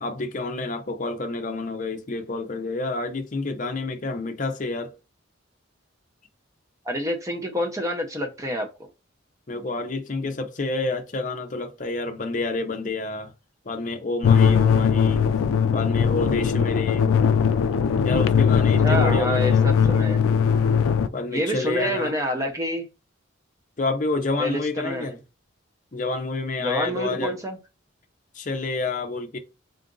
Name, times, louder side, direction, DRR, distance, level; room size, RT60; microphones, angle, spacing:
voice 1, 0.0-4.9 9.5-13.3 13.7-15.2 15.7-17.1 18.0-19.8 20.2-20.3 21.1-22.1 23.8-25.1 25.9-27.3 28.3-29.4, left 3 dB, 40° left, 0.6 m, -29 dB
voice 2, 6.9-8.7 18.8-20.2 21.3-22.8 24.4-25.2 26.6-27.6, equal, 15° right, 0.6 m, -27 dB
sound 1, 14.2-21.1, left 7 dB, 90° left, 0.3 m, -19 dB
3.8 x 2.5 x 3.8 m
head